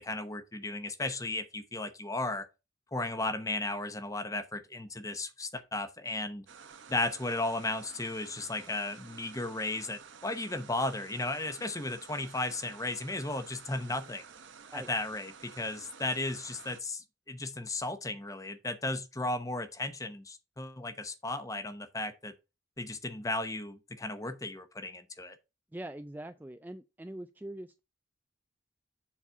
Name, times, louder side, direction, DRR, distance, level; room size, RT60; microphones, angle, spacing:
voice 1, 0.0-2.5 2.9-6.4 6.9-14.2 14.7-22.3 22.8-25.4, left 2 dB, 15° left, 0.9 m, -35 dB
sound 1, 6.5-16.8, right 6 dB, 70° right, 0.9 m, -52 dB
voice 2, 25.7-27.8, right 1 dB, 10° right, 0.4 m, -43 dB
7.3 x 4.1 x 5.5 m
head